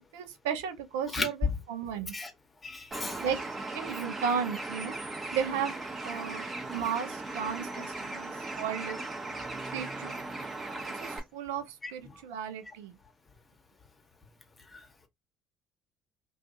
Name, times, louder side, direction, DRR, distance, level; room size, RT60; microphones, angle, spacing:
voice 1, 0.0-2.1 3.2-3.4 3.7-5.7 6.0-9.0 9.7-10.2 10.9-12.9, right 7 dB, 80° right, 0.4 m, -34 dB
voice 2, 2.6-3.2 6.2-6.3 11.8-11.9 14.7-14.8, left 3 dB, 25° left, 1.0 m, -35 dB
Bird, 2.9-11.2, right 2 dB, 30° right, 0.9 m, -38 dB
2.5 x 2.4 x 2.5 m
hypercardioid pair, 60°, 0 cm